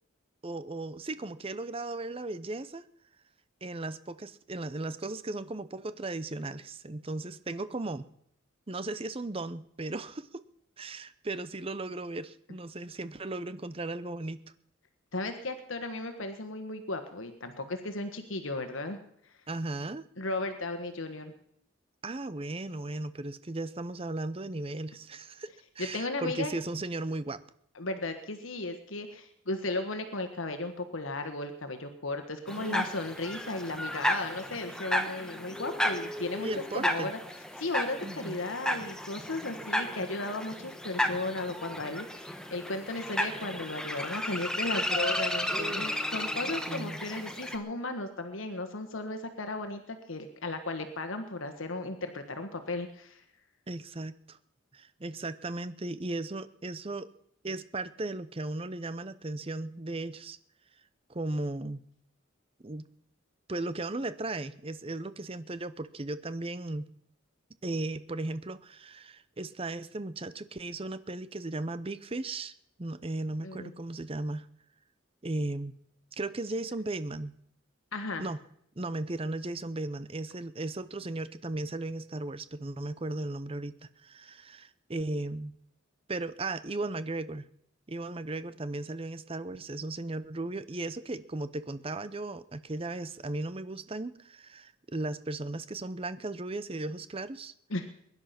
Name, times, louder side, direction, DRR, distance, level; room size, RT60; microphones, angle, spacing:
voice 1, 0.4-2.8 3.6-8.1 8.7-10.4 10.8-14.4 19.5-20.1 22.0-25.5 25.8-27.4 32.6-32.9 36.4-37.1 38.0-38.4 45.5-46.0 46.7-47.0 53.7-54.4 54.7-57.1 57.4-60.4 61.1-61.8 62.6-62.9 63.5-66.9 67.6-72.5 72.8-74.5 75.2-75.7 76.2-77.3 78.2-78.4 78.8-83.7 84.0-85.5 86.1-87.5 87.9-97.5, right 2 dB, 25° right, 14 dB, 0.7 m, -36 dB
voice 2, 15.1-19.0 20.2-21.3 25.8-26.5 27.7-36.5 36.7-37.2 37.6-53.2 73.4-73.7 77.9-78.3 97.7-97.9, left 2 dB, 70° left, 7 dB, 1.4 m, -35 dB
sound 1, 32.5-47.6, left 1 dB, 5° left, 1.1 m, -33 dB
21.5 x 11.0 x 5.9 m, 0.71 s
head